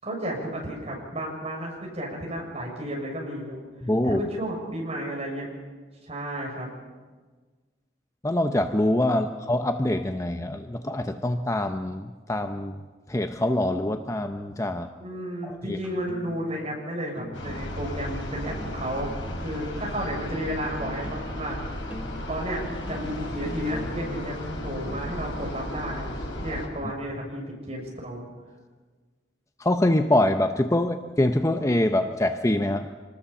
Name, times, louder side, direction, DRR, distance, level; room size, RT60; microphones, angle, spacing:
voice 1, 0.0-3.6 4.0-5.5 6.1-6.7 15.0-19.2 19.4-21.6 21.8-21.9 22.3-22.6 22.9-28.2, equal, 35° right, -1 dB, 6.9 m, -32 dB
voice 2, 3.8-4.2 8.2-12.8 13.1-14.9 15.4-15.8 29.6-32.9, left 1 dB, 15° left, 7 dB, 0.7 m, -24 dB
sound 1, 15.8-16.8 17.1-18.0 18.4-21.4 21.6-25.1, equal, 10° right, 2.0 m, -42 dB
sound 2, 17.3-26.7, left 1 dB, 80° left, 6.3 m, -34 dB
26.0 x 20.0 x 7.2 m, 1.4 s
head